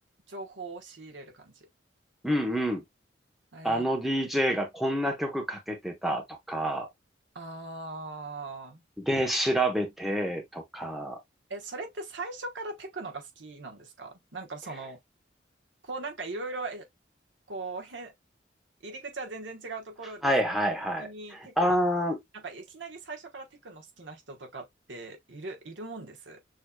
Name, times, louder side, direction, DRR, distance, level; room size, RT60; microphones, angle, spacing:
voice 1, 0.3-1.7 3.5-3.8 7.3-8.8 11.5-15.0 15.8-16.9 17.5-18.1 18.8-20.3 21.0-21.8 22.3-26.4, right 3 dB, 80° right, 1.3 m, -40 dB
voice 2, 2.2-2.8 3.6-6.9 9.0-11.2 20.2-22.2, equal, ahead, 1.0 m, -28 dB
6.4 x 3.0 x 2.3 m
head